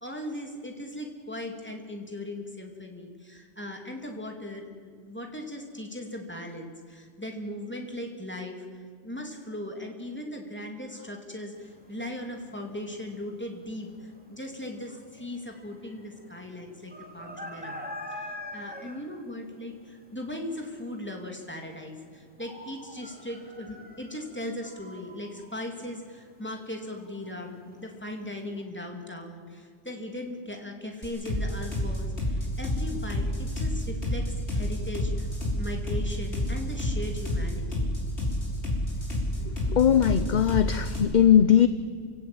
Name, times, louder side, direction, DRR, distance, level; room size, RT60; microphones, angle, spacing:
voice 1, 0.0-17.8 18.1-35.3 35.5-37.9, left 1 dB, 10° left, 2 dB, 3.1 m, -38 dB
sound 1, 11.5-28.6, left 1 dB, 5° right, 2.7 m, -46 dB
sound 2, 31.0-41.0, left 1 dB, 65° left, 6.0 m, -29 dB
voice 2, 39.7-41.7, left 9 dB, 45° left, 12 dB, 0.8 m, -20 dB
28.0 x 17.0 x 8.9 m, 2.2 s
omnidirectional pair, 1.2 m